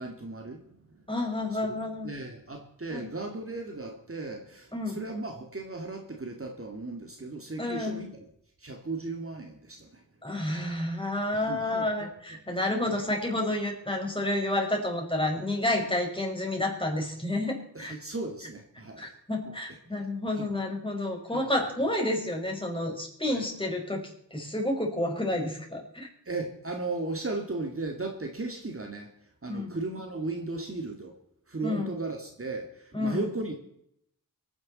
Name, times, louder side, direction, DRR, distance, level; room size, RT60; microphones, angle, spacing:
voice 1, 0.0-1.0 1.7-1.8 2.0-8.2 8.6-10.0 11.3-12.4 12.9-13.0 17.7-19.1 19.5-19.6 20.0-20.5 21.3-21.5 23.3-23.5 26.3-31.1 31.5-33.6, right 3 dB, 35° right, 3 dB, 2.3 m, -36 dB
voice 2, 1.1-2.1 2.9-3.1 4.7-5.0 7.6-8.1 10.2-17.9 19.0-24.0 24.3-26.1 29.5-29.7 31.6-31.9 32.9-33.2, left 1 dB, 15° left, 0 dB, 5.6 m, -30 dB
24.0 x 10.5 x 4.2 m, 0.73 s
cardioid pair, 55°, 37 cm